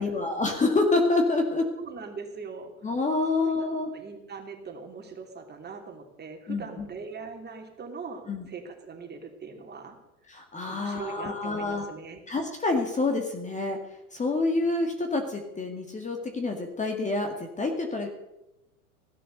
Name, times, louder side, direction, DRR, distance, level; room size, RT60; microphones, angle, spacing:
voice 1, 0.0-1.7 2.8-3.9 6.5-6.9 8.3-8.4 10.3-11.8 12.3-13.8 14.1-18.1, left 3 dB, 15° left, 4 dB, 2.1 m, -27 dB
voice 2, 1.8-2.9 3.3-3.5 3.9-10.0 10.7-12.2, right 5 dB, 20° right, 3 dB, 3.1 m, -41 dB
17.0 x 12.5 x 6.6 m, 0.95 s
figure-of-eight pair, 85°, 45 cm